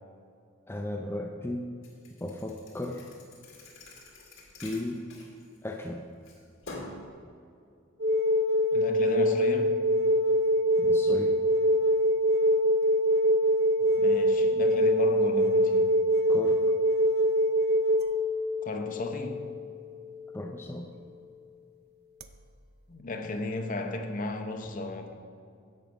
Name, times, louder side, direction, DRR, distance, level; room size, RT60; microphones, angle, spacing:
voice 1, 0.7-1.6 2.2-3.1 4.6-5.0 5.6-6.0 10.8-11.3 16.3-16.6 20.3-20.9, left 1 dB, 10° left, 2 dB, 0.5 m, -35 dB
Thump thud, 1.8-5.9 6.3-7.1, left 2 dB, 70° left, 2.2 m, -46 dB
sound 1, 8.0-20.4 22.2-22.3, equal, 50° right, 0.5 m, -24 dB
voice 2, 8.7-9.8 14.0-15.9 18.6-19.4 22.9-25.1, left 2 dB, 40° left, 4 dB, 0.9 m, -34 dB
11.0 x 7.3 x 5.3 m, 2.4 s
head